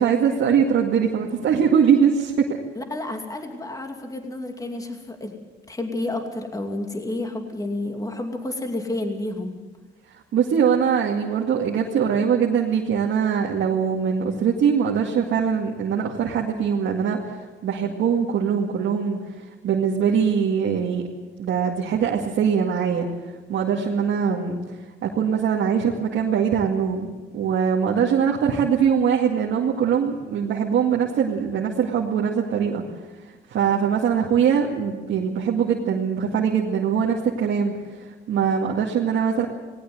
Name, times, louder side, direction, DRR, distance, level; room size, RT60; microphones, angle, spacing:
voice 1, 0.0-2.5 10.1-21.1 21.4-23.1 23.5-27.1 27.3-32.8 33.2-39.5, right 7 dB, 70° right, -2 dB, 2.1 m, -22 dB
voice 2, 2.7-5.4 5.7-9.6, left 2 dB, 15° left, 3 dB, 2.6 m, -30 dB
19.0 x 17.5 x 7.9 m, 1.3 s
cardioid pair, 90°, 20 cm